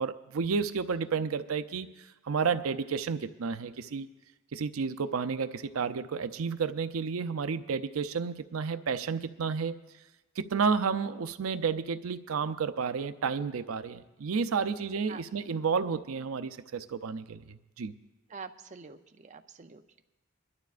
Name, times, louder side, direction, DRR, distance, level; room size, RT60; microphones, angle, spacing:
voice 1, 0.0-1.9 2.2-4.1 4.5-9.8 10.4-17.9, right 5 dB, 90° right, 11 dB, 0.5 m, -31 dB
voice 2, 18.3-20.0, right 5 dB, 35° right, 7 dB, 0.5 m, -46 dB
26.5 x 11.5 x 2.5 m, 1.1 s
head